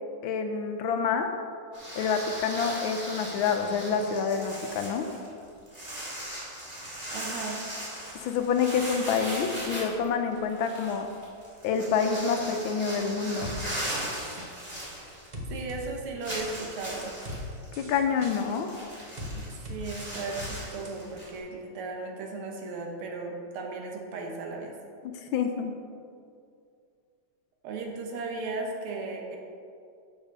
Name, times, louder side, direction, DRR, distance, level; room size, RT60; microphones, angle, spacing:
voice 1, 0.2-1.3 2.0-5.1 8.1-11.1 11.6-13.5 17.8-18.7 25.0-25.7, left 6 dB, 75° left, 6 dB, 1.4 m, -27 dB
sound 1, 1.7-15.5 15.8-15.9 16.2-21.4, right 1 dB, 20° right, 2.1 m, -38 dB
voice 2, 7.1-7.6 15.5-17.1 19.3-24.7 27.6-29.4, right 3 dB, 80° right, 1 dB, 1.9 m, -36 dB
sound 2, 13.4-13.6 14.1-14.5 15.3-15.8 16.3-16.4 17.0-17.4 17.7-18.3 19.2-19.3 19.7-19.8 20.1-20.5 20.9-21.0, equal, 50° right, 0.5 m, -39 dB
7.2 x 6.2 x 5.2 m, 2.3 s
omnidirectional pair, 2.4 m